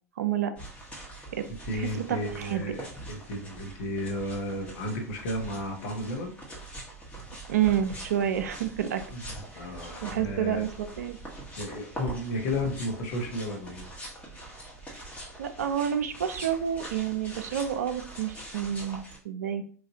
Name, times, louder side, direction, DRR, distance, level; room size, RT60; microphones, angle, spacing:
voice 1, 0.2-0.5 1.3-1.4 1.7-2.6 7.5-9.0 9.6-9.8 10.0-11.2 15.4-19.6, right 9 dB, 70° right, 9 dB, 0.4 m, -29 dB
sound 1, 0.6-19.2, right 2 dB, 15° left, 1.1 m, -43 dB
voice 2, 1.6-6.3 9.1-9.2 9.5-10.6 11.6-13.9, left 1 dB, 60° left, 1 dB, 1.0 m, -33 dB
3.1 x 2.5 x 2.7 m, 0.42 s
figure-of-eight pair, 90°, 9 cm